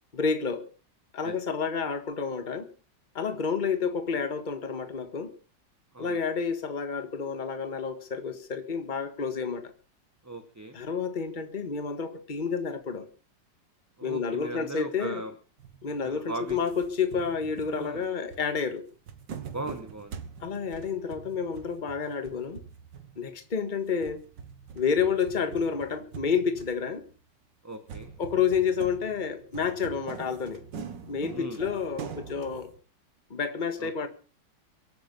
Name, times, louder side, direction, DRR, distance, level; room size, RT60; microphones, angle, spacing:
voice 1, 0.1-0.7 1.1-2.7 3.1-5.3 6.0-9.7 10.7-13.1 14.0-15.2 15.8-18.8 20.4-22.6 23.2-24.2 24.7-27.0 28.2-30.6 31.1-32.7 33.3-34.1, left 6 dB, 25° left, 9 dB, 1.6 m, -29 dB
voice 2, 10.2-10.8 14.0-15.3 16.0-16.6 17.7-18.0 19.5-20.1 27.6-28.1 31.3-31.6 33.8-33.9, right 2 dB, 10° right, 7 dB, 1.0 m, -38 dB
sound 1, 15.6-16.2 16.5-23.4 23.9-27.1 27.9-32.8, right 7 dB, 80° right, 2.1 m, -44 dB
24.0 x 9.1 x 5.4 m, 0.38 s
omnidirectional pair, 1.9 m